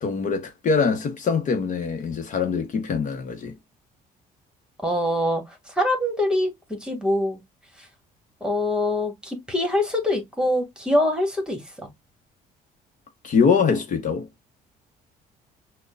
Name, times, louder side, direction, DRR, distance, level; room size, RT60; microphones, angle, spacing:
voice 1, 0.0-3.5 13.2-14.3, left 5 dB, 50° left, 0.9 m, -23 dB
voice 2, 4.8-7.4 8.4-11.9, left 1 dB, 5° right, 1.4 m, -24 dB
6.2 x 2.2 x 2.3 m
cardioid pair, 110°, 17 cm